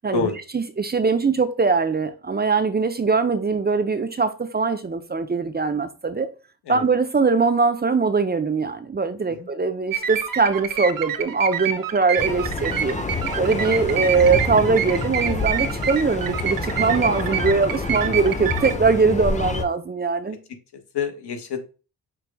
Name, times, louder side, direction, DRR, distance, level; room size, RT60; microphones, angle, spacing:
voice 1, 0.0-6.3 6.7-13.0 13.4-20.4, right 4 dB, 25° right, 0.6 m, -21 dB
sound 1, 9.9-18.7, right 9 dB, 55° right, 0.8 m, -28 dB
sound 2, 12.2-19.6, left 3 dB, 20° left, 0.8 m, -28 dB
voice 2, 20.7-21.6, left 5 dB, 70° left, 1.3 m, -28 dB
6.1 x 2.3 x 3.4 m
cardioid pair, 75°, 40 cm